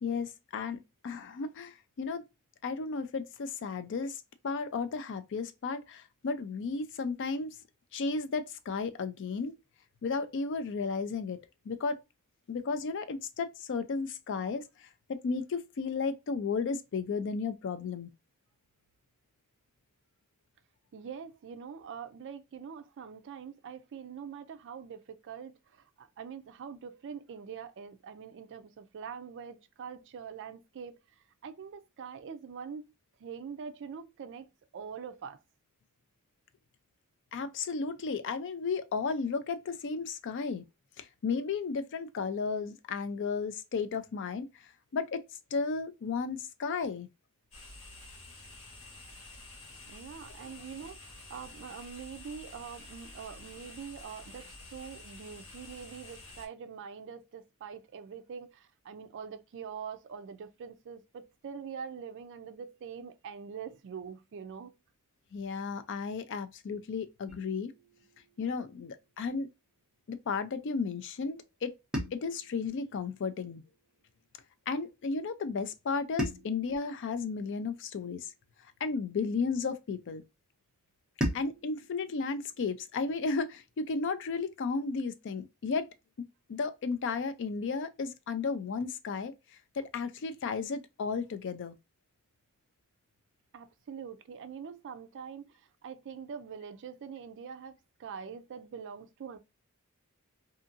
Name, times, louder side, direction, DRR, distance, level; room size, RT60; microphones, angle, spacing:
voice 1, 0.0-2.2 2.6-4.2 4.4-7.6 7.9-9.5 10.0-11.4 11.7-12.0 12.5-14.7 15.1-18.1 37.3-40.6 41.0-44.5 44.9-45.2 45.5-47.1 65.3-67.7 68.4-69.5 70.1-71.7 72.1-73.6 74.7-78.3 78.8-80.2 81.3-85.9 86.5-89.3 89.8-91.8, left 4 dB, 55° left, 0.4 m, -34 dB
voice 2, 20.9-32.8 33.2-35.4 49.9-64.7 93.5-99.4, right 6 dB, 55° right, 0.4 m, -44 dB
sound 1, 47.5-56.5, left 2 dB, 85° left, 1.4 m, -50 dB
sound 2, 67.3-69.5 71.9-74.3 76.2-78.7 81.2-83.7, equal, 5° right, 0.7 m, -41 dB
2.7 x 2.6 x 2.5 m
head